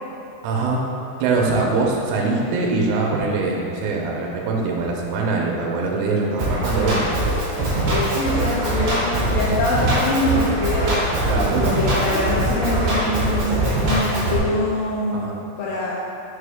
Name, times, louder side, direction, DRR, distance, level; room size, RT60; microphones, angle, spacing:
voice 1, 0.4-0.9 1.2-7.1 11.3-11.8 15.1-15.4, right 3 dB, 80° right, -1 dB, 2.6 m, -22 dB
Drum kit, 6.4-14.4, right 1 dB, 65° right, 1.8 m, -22 dB
sound 1, 7.1-12.3, left 1 dB, 70° left, 2.8 m, -34 dB
voice 2, 7.9-11.0 11.4-15.9, left 1 dB, 90° left, -7 dB, 2.5 m, -24 dB
6.6 x 4.5 x 3.4 m, 2.7 s
omnidirectional pair, 5.6 m